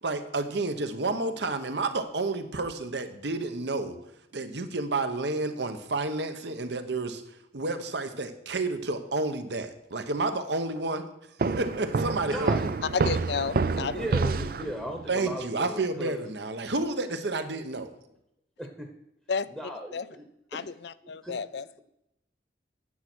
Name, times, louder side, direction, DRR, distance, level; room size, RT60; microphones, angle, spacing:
voice 1, 0.0-4.0 4.3-7.2 7.5-11.0 11.6-12.7 15.1-17.9, right 3 dB, 70° right, 1.1 m, -30 dB
sound 1, 11.4-15.1, right 4 dB, 50° right, 0.4 m, -28 dB
voice 2, 12.1-12.7 13.9-16.2 18.6-18.9 19.5-20.2 20.5-20.6 21.2-21.6, equal, 5° right, 1.0 m, -37 dB
voice 3, 12.9-14.1 19.3-19.5 19.9-20.1 20.5-21.8, left 5 dB, 65° left, 0.5 m, -32 dB
9.5 x 7.3 x 6.2 m
head